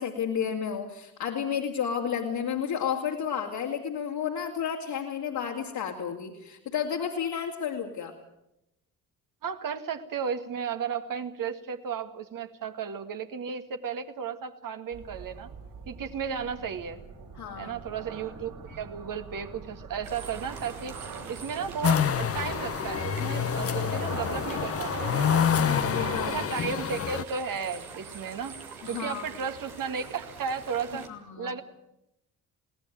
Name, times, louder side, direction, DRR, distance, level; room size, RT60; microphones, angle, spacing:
voice 1, 0.0-8.1 17.4-17.7 25.6-26.3 28.8-29.2 31.1-31.5, left 7 dB, 60° left, -1 dB, 2.7 m, -31 dB
voice 2, 9.4-15.5 15.9-17.0 17.6-21.0 21.3-25.9 26.3-28.6 28.9-31.1 31.4-31.6, right 6 dB, 50° right, 8 dB, 1.9 m, -34 dB
sound 1, 14.9-26.4, right 4 dB, 70° right, 7.6 m, -41 dB
sound 2, 20.0-31.1, right 5 dB, 85° right, 1.9 m, -44 dB
sound 3, 21.8-27.2, left 8 dB, 35° left, 0.9 m, -27 dB
22.0 x 17.5 x 9.0 m, 0.86 s
figure-of-eight pair, 45°, 42 cm